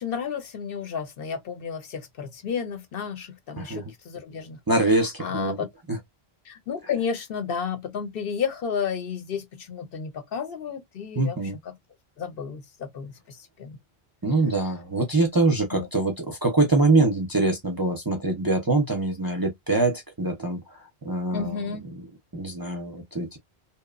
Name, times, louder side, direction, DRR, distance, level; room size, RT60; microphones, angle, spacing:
voice 1, 0.0-4.6 5.2-5.7 6.5-11.4 11.7-11.8 12.2-13.8 15.7-15.9 21.3-21.9, left 6 dB, 65° left, 0.8 m, -32 dB
voice 2, 3.6-3.9 4.7-5.6 5.9-6.0 11.2-11.6 14.2-20.6 21.0-21.8 22.3-23.4, right 2 dB, 30° right, 0.5 m, -24 dB
2.9 x 2.1 x 2.3 m
omnidirectional pair, 1.0 m